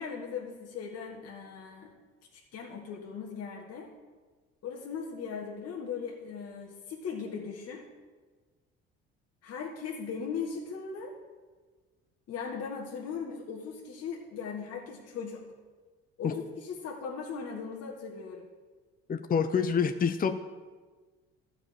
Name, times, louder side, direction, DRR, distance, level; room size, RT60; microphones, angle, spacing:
voice 1, 0.0-1.9 2.3-3.9 4.6-7.8 9.4-11.1 12.3-15.4 16.2-18.4, left 6 dB, 55° left, -1 dB, 1.7 m, -38 dB
voice 2, 19.1-20.3, left 6 dB, 30° left, 9 dB, 0.7 m, -27 dB
12.0 x 5.5 x 8.7 m, 1.4 s
supercardioid pair, 70°, 30 cm